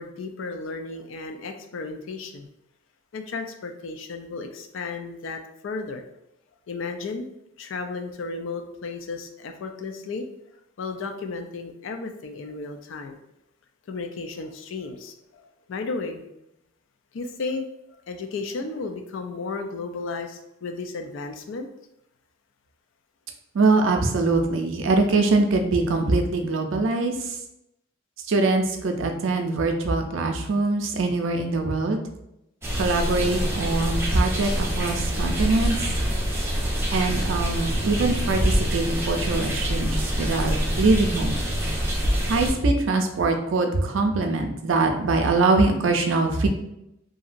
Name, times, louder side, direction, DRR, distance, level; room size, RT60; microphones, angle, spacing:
voice 1, 0.0-2.5 3.1-6.0 6.7-7.3 7.6-10.3 10.8-13.2 13.9-16.2 17.1-17.7 18.1-21.7, left 4 dB, 80° left, 5 dB, 0.4 m, -34 dB
voice 2, 23.5-27.4 28.3-32.0 32.8-35.8 36.9-41.4 42.3-46.5, right 3 dB, 90° right, 4 dB, 0.5 m, -23 dB
sound 1, 32.6-42.5, equal, 15° right, 0.6 m, -25 dB
2.8 x 2.6 x 2.5 m, 0.83 s
head